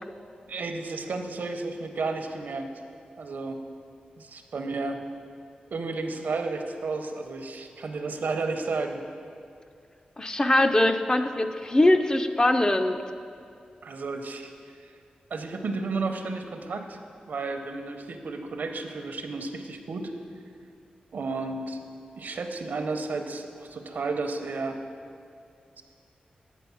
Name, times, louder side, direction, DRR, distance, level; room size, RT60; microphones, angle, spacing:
voice 1, 0.5-2.7 3.2-3.6 4.2-5.0 5.7-9.0 13.8-14.5 14.8-14.9 15.3-17.0 17.3-20.1 21.1-21.8 22.2-24.8 25.8-25.9, right 3 dB, 70° right, 6 dB, 0.6 m, -32 dB
voice 2, 10.2-13.0, left 1 dB, 25° left, 7 dB, 0.4 m, -22 dB
8.3 x 4.1 x 6.9 m, 2.4 s
cardioid pair, 60°, 3 cm